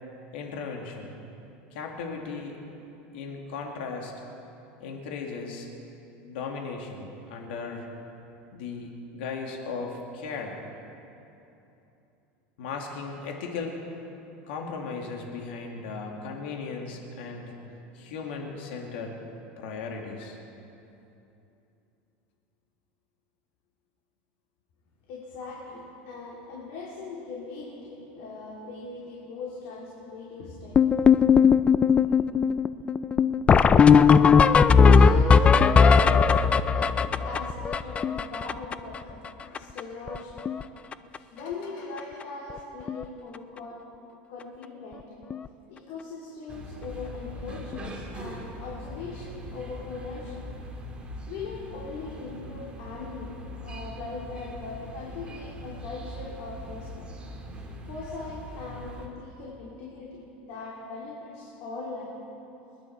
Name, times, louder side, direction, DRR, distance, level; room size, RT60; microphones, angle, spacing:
voice 1, 0.3-1.2 1.7-2.6 3.1-4.1 4.8-5.7 6.2-7.8 8.5-10.6 12.6-13.8 14.5-17.5 17.9-19.2 19.6-20.4 39.1-39.9 40.6-40.7 41.4-41.7, left 4 dB, 85° left, 1 dB, 2.2 m, -37 dB
voice 2, 25.1-31.1 33.6-39.0 39.4-40.4 40.9-43.8 44.3-45.0 45.7-50.4 51.3-53.4 53.6-57.1 57.9-62.1, left 3 dB, 65° left, -5 dB, 3.3 m, -40 dB
sound 1, 30.7-39.0 39.2-39.3 39.5-39.8 40.1-40.6 40.9-41.2 42.0-42.1 42.5-42.6 42.9-43.0 45.3-45.4 47.7-47.8, left 6 dB, 20° left, 0.4 m, -18 dB
sound 2, 46.5-59.1, equal, 20° right, 2.3 m, -41 dB
28.0 x 10.5 x 4.6 m, 2.9 s
supercardioid pair, 135°, 6 cm